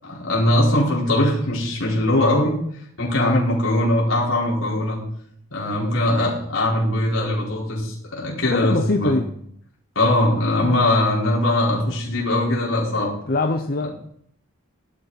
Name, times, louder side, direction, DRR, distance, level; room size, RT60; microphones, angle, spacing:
voice 1, 0.0-2.6 3.0-5.0 5.5-9.2 9.9-13.1, left 1 dB, 80° left, -5 dB, 4.8 m, -21 dB
voice 2, 8.4-9.3 13.3-13.9, left 2 dB, 45° left, 6 dB, 0.8 m, -23 dB
17.0 x 12.0 x 4.2 m, 0.67 s
head